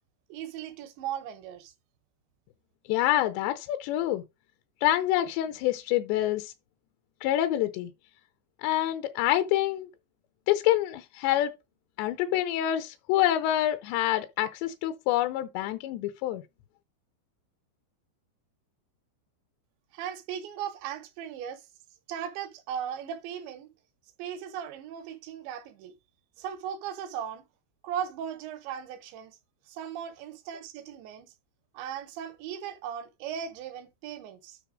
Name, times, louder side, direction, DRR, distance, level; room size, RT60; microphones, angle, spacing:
voice 1, 0.3-1.7 19.9-21.7 22.1-23.7 24.2-25.9 26.4-27.4 27.8-29.4 29.7-31.3 31.7-34.6, right 9 dB, 75° right, 2.9 m, -37 dB
voice 2, 2.9-4.2 4.8-6.5 7.2-7.9 8.6-9.9 10.5-11.5 12.0-16.4, left 13 dB, 80° left, 2.6 m, -26 dB
9.3 x 4.4 x 4.9 m
omnidirectional pair, 5.5 m